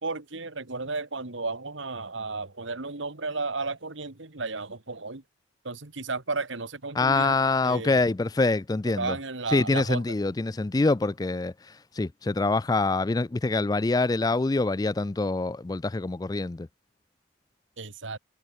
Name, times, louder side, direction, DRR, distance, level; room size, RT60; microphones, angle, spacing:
voice 1, 0.0-5.2 5.6-7.4 7.6-8.0 9.0-10.0 17.8-18.2, right 3 dB, 70° right, 1.9 m, -33 dB
voice 2, 6.9-9.2 9.5-16.7, left 3 dB, 20° left, 0.3 m, -25 dB
head